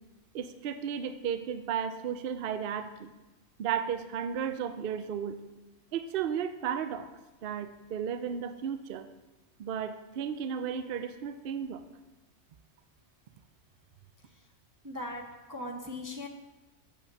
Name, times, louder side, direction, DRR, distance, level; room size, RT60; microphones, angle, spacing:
voice 1, 0.3-3.1 3.6-5.4 5.9-7.1 7.4-9.1 9.6-11.8, right 8 dB, 60° right, 10 dB, 0.7 m, -34 dB
voice 2, 14.8-15.2 15.5-16.3, left 1 dB, 20° right, 1 dB, 0.5 m, -38 dB
7.0 x 5.8 x 6.6 m, 1.1 s
omnidirectional pair, 1.3 m